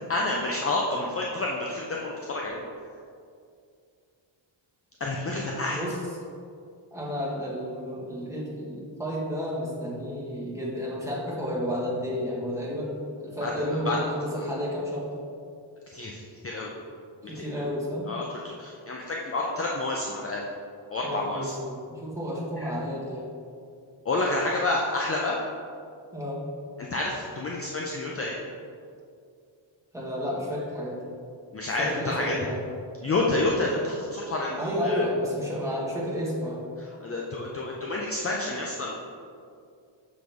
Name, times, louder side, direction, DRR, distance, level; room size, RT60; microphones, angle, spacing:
voice 1, 0.1-2.6 5.0-5.8 13.4-13.5 13.9-14.0 14.3-14.4 15.9-16.7 17.4-17.6 18.1-20.4 20.9-21.5 22.6-22.7 24.1-25.4 26.9-28.3 31.5-32.3 33.0-35.0 37.0-38.9, left 2 dB, 30° left, -1 dB, 0.6 m, -29 dB
voice 2, 6.9-15.1 17.3-18.1 21.0-23.3 26.1-26.4 29.9-31.1 31.8-32.6 34.6-36.6, equal, 5° right, -7 dB, 1.7 m, -31 dB
6.3 x 6.0 x 3.5 m, 2.4 s
wide cardioid pair, 125°, 48 cm